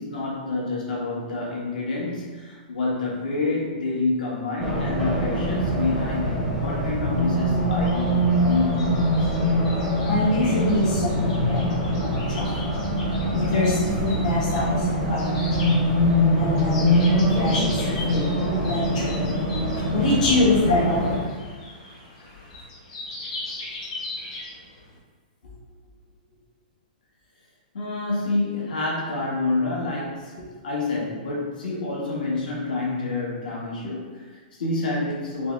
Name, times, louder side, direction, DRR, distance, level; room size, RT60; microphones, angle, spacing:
voice 1, 0.0-9.3 25.4-25.5 27.7-35.5, left 3 dB, 70° left, -5 dB, 1.5 m, -28 dB
Race car auto racing, 4.6-21.2, equal, ahead, 0.6 m, -23 dB
sound 1, 7.8-24.9, left 2 dB, 35° left, 1.2 m, -40 dB
voice 2, 10.1-12.8 13.0-21.4 21.8-22.5, left 2 dB, 50° left, -9 dB, 1.2 m, -26 dB
5.2 x 2.2 x 3.2 m, 1.5 s
hypercardioid pair, 175°, 5 cm